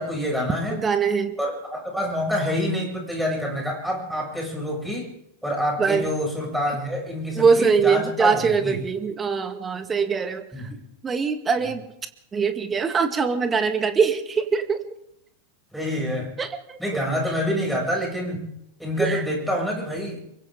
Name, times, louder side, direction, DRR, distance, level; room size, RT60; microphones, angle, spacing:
voice 1, 0.0-0.8 1.4-5.1 5.4-8.7 10.5-10.6 15.7-16.3 16.8-18.4 18.8-20.2, equal, ahead, -2 dB, 8.0 m, -27 dB
voice 2, 0.7-1.4 5.8-6.1 7.4-10.7 11.0-11.9 12.3-14.8 16.4-17.0 19.0-19.3, right 5 dB, 20° right, 8 dB, 2.0 m, -23 dB
28.0 x 23.5 x 4.0 m, 0.79 s
figure-of-eight pair, 90°, 0 cm